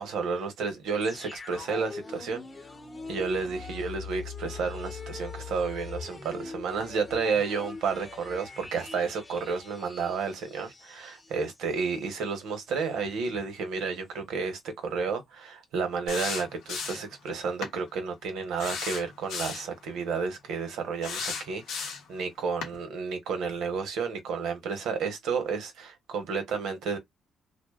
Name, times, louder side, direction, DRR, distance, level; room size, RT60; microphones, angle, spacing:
voice 1, 0.0-2.4 3.1-27.0, right 5 dB, 85° right, 0.8 m, -31 dB
sound 1, 1.0-11.8 12.1-12.2, left 4 dB, 30° left, 0.8 m, -42 dB
sound 2, 16.1-17.1 17.6-17.8 18.6-19.7 21.0-22.1 22.6-22.8, left 5 dB, 90° left, 0.8 m, -34 dB
2.5 x 2.1 x 2.3 m
cardioid pair, 90°, 0 cm